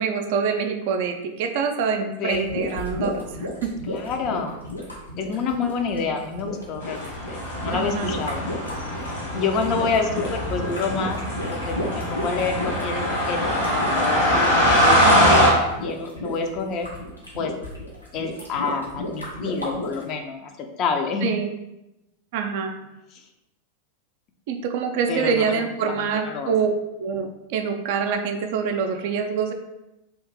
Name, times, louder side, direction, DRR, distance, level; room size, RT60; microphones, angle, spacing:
voice 1, 0.0-3.7 7.7-8.1 15.0-15.4 21.2-21.5 22.3-22.7 24.5-26.7 27.0-29.5, right 6 dB, 50° right, 5 dB, 0.4 m, -25 dB
sound 1, 2.3-20.0, left 1 dB, 85° left, 0.8 m, -33 dB
voice 2, 3.9-4.6 5.1-8.4 9.3-11.2 11.5-16.9 17.3-17.5 18.1-21.3 23.1-23.2 25.1-26.5, left 5 dB, 35° left, 4 dB, 0.4 m, -28 dB
sound 2, 6.8-15.5, equal, 60° left, 1.2 m, -22 dB
2.8 x 2.6 x 3.6 m, 0.92 s
figure-of-eight pair, 90°, 0 cm